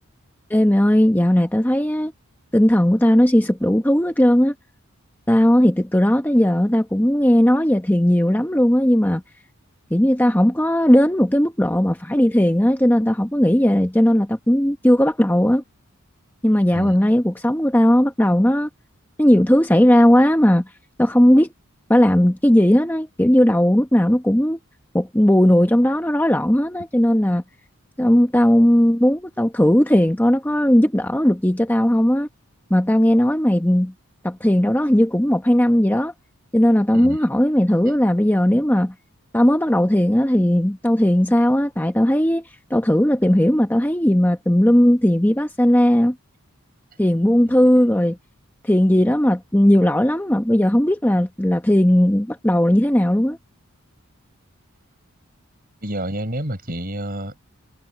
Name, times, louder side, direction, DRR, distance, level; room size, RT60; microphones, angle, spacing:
voice 1, 0.5-2.1 2.5-4.5 5.3-9.2 9.9-15.6 16.4-18.7 19.2-20.6 21.0-21.5 21.9-24.6 24.9-27.4 28.0-32.3 32.7-33.9 34.2-36.1 36.5-38.9 39.3-46.2 47.0-48.2 48.6-53.4, equal, 10° left, 0.9 m, -17 dB
voice 2, 55.8-57.4, right 1 dB, 40° right, 7.0 m, -29 dB
head